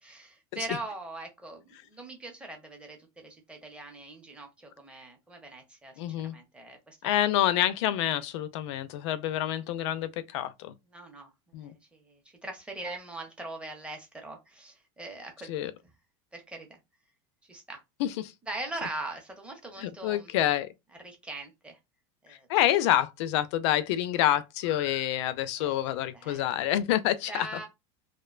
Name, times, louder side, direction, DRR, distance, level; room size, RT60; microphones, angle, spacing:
voice 1, 0.0-7.2 10.9-15.7 16.3-16.8 17.4-17.8 18.5-20.3 21.0-21.8 22.2-22.5 25.6-25.7 26.1-26.5 27.3-27.7, right 2 dB, 5° right, 0.6 m, -41 dB
voice 2, 6.0-6.4 7.0-10.7 11.5-11.7 15.5-15.7 18.0-18.1 19.8-20.7 22.5-27.5, left 12 dB, 70° left, 0.4 m, -27 dB
2.4 x 2.1 x 2.4 m
supercardioid pair, 150°, 16 cm